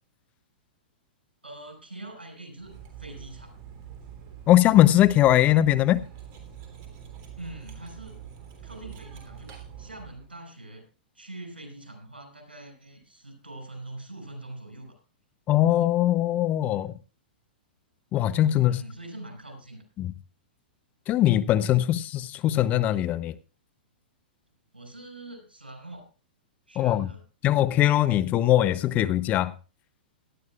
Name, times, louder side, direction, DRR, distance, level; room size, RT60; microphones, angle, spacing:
voice 1, 1.4-3.6 7.4-8.2 8.6-10.8 11.1-15.0 18.7-19.8 24.7-26.1 26.7-27.2, right 2 dB, 90° right, 5.8 m, -43 dB
Cutlery silverware, 2.6-10.3, right 8 dB, 40° right, 3.1 m, -45 dB
voice 2, 4.5-6.0 15.5-16.9 18.1-18.8 20.0-20.1 21.1-23.4 26.8-27.1 27.4-29.5, left 13 dB, 30° left, 0.6 m, -21 dB
18.0 x 12.0 x 2.4 m
figure-of-eight pair, 110°, 5 cm